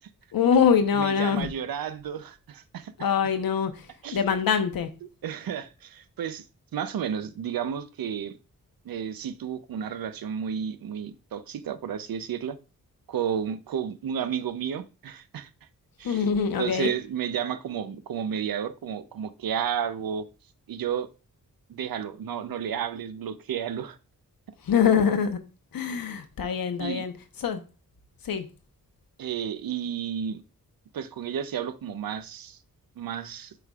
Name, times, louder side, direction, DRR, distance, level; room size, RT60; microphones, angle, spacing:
voice 1, 0.3-1.5 3.0-3.9 4.1-4.9 16.0-16.9 24.6-25.4 25.7-27.1 27.4-27.6 28.2-28.4, left 7 dB, 85° left, 0.9 m, -24 dB
voice 2, 0.9-2.9 4.0-4.2 5.2-6.5 6.7-8.4 8.8-12.6 13.1-15.5 16.0-16.2 16.6-20.3 20.7-21.1 21.7-24.0 26.8-27.0 29.2-30.4 30.9-32.6 33.0-33.5, right 8 dB, 85° right, 0.6 m, -32 dB
7.8 x 5.1 x 2.4 m
wide cardioid pair, 120°, 34 cm